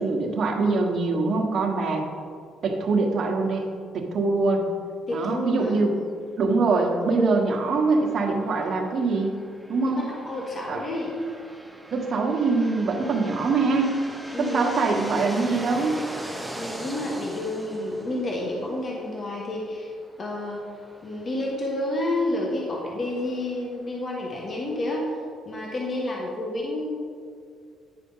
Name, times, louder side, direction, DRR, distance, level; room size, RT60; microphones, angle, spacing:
voice 1, 0.0-2.1 2.6-3.6 3.9-4.6 5.1-5.9 6.4-9.4 9.7-10.1 10.7-10.8 11.9-14.0 14.4-16.0, right 3 dB, 50° right, 1 dB, 1.3 m, -23 dB
voice 2, 5.1-5.8 9.9-11.1 14.3-14.7 16.5-19.9 20.2-20.6 21.0-25.1 25.4-26.9, left 1 dB, 35° left, -2 dB, 1.3 m, -30 dB
sound 1, 7.5-25.1, right 1 dB, ahead, 0.8 m, -42 dB
9.9 x 5.0 x 5.6 m, 2.2 s
cardioid pair, 120°, 0 cm